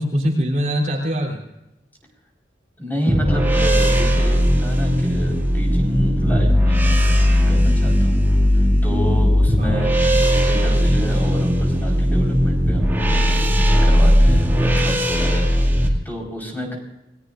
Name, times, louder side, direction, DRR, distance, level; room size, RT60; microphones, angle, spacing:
voice 1, 0.0-1.4 9.6-9.9, equal, 45° right, -1 dB, 3.7 m, -23 dB
voice 2, 2.8-8.3 8.8-16.8, equal, 10° left, -1 dB, 4.6 m, -29 dB
sound 1, 3.1-15.9, equal, 15° right, 2.5 m, -17 dB
29.0 x 19.5 x 2.6 m, 0.90 s
head